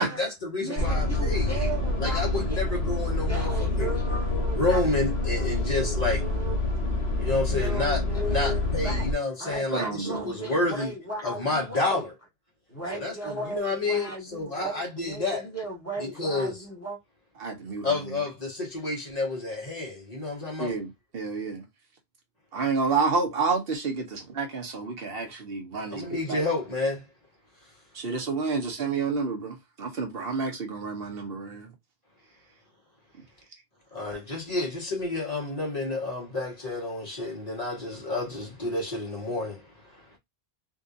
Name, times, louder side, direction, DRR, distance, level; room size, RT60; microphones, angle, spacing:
voice 1, 0.0-1.5 2.0-4.0 4.5-6.2 7.2-8.0 8.3-10.9 11.2-12.1 12.9-15.4 16.0-16.6 17.8-20.7 25.9-27.1 33.9-40.2, left 2 dB, 40° left, 1.7 m, -30 dB
voice 2, 0.6-2.8 3.3-6.6 7.5-9.1 9.4-12.1 12.7-17.0, right 1 dB, 15° left, 1.7 m, -36 dB
sound 1, 0.8-9.1, left 2 dB, 85° left, 1.2 m, -27 dB
voice 3, 9.7-10.2 17.4-17.9 20.6-20.9 21.1-21.6 22.5-26.4 27.9-31.7, right 4 dB, 65° right, 1.2 m, -29 dB
3.7 x 2.7 x 2.6 m
omnidirectional pair, 1.1 m